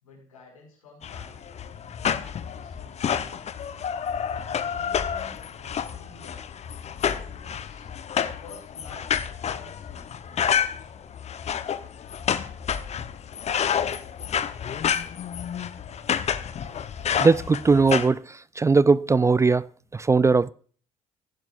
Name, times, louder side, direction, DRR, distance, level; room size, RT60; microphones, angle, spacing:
voice 1, 0.0-1.6 2.5-3.4 4.1-6.4 6.9-7.9 8.1-11.1 19.6-19.8, left 3 dB, 85° left, 5.4 m, -50 dB
sound 1, 1.0-18.1, left 8 dB, 40° left, 0.9 m, -29 dB
voice 2, 17.2-18.2 18.6-19.6 19.9-20.5, right 4 dB, 15° right, 0.4 m, -19 dB
17.0 x 10.5 x 2.5 m
hypercardioid pair, 60°, 17 cm